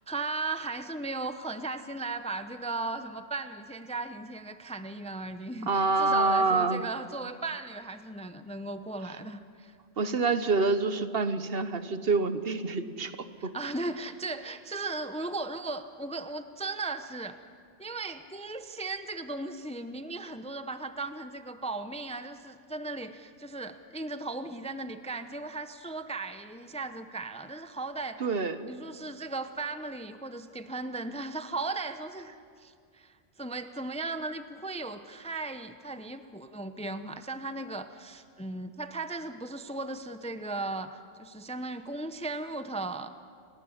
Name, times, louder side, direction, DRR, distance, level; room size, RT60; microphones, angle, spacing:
voice 1, 0.1-9.7 13.4-17.4 17.8-28.2 28.7-43.1, right 3 dB, 5° left, 9 dB, 0.6 m, -37 dB
voice 2, 5.7-6.8 10.0-13.5 28.2-28.7, right 3 dB, 60° right, 11 dB, 1.2 m, -27 dB
29.5 x 12.5 x 9.7 m, 2.2 s
omnidirectional pair, 1.1 m